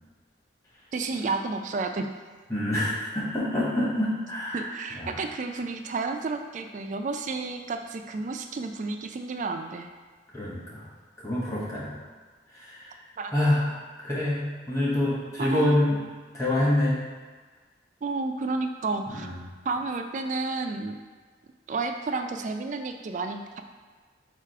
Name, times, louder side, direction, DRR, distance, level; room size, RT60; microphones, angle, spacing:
voice 1, 0.9-2.1 4.5-9.9 13.2-13.3 15.4-15.8 18.0-19.3 19.7-21.0 21.7-23.6, right 3 dB, 40° right, 6 dB, 0.3 m, -31 dB
voice 2, 2.5-4.6 5.0-5.2 10.3-10.8 11.2-11.9 12.7-12.8 13.3-13.7 14.0-16.0 16.3-17.0 19.1-19.4, left 1 dB, 15° left, -8 dB, 1.1 m, -26 dB
4.7 x 2.5 x 4.6 m, 1.4 s
head